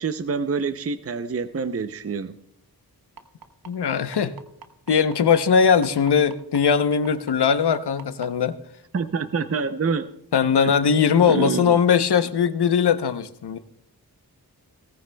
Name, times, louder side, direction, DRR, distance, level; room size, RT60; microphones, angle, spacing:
voice 1, 0.0-2.4 8.9-10.1 10.6-10.7 11.3-11.8, right 5 dB, 40° right, 10 dB, 0.6 m, -26 dB
sound 1, 3.2-8.3 9.3-9.4 9.8-9.9 10.4-10.5, right 6 dB, 65° right, 1.2 m, -42 dB
voice 2, 3.7-4.3 4.9-8.6 10.3-13.6, left 7 dB, 90° left, 11 dB, 0.8 m, -20 dB
18.0 x 15.0 x 2.2 m, 0.75 s
wide cardioid pair, 70°, 39 cm